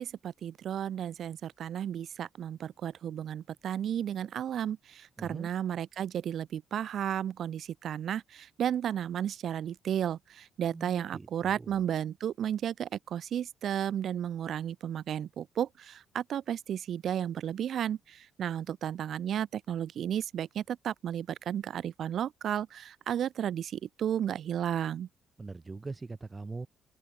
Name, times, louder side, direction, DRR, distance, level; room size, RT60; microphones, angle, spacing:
voice 1, 0.0-25.1, right 9 dB, 65° right, 0.7 m, -33 dB
voice 2, 5.2-5.5 10.7-11.8 25.4-26.7, right 3 dB, 25° right, 6.0 m, -42 dB
open air
cardioid pair, 90°, 0 cm